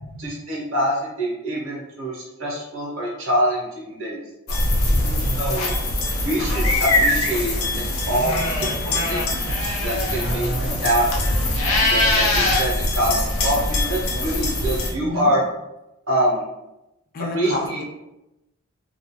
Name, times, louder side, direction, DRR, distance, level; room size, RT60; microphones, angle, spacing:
voice 1, 0.2-4.2 5.4-5.7 6.2-9.4 9.8-10.5 10.8-11.3 11.9-13.1 13.4-15.4 16.1-16.4 17.3-17.8, right 1 dB, 65° right, -3 dB, 0.9 m, -25 dB
sound 1, 4.5-14.9, left 1 dB, 75° left, 0.7 m, -22 dB
voice 2, 4.9-5.3 15.0-15.3 17.1-17.8, left 2 dB, 40° left, 2 dB, 0.4 m, -31 dB
2.4 x 2.3 x 3.0 m, 0.93 s
head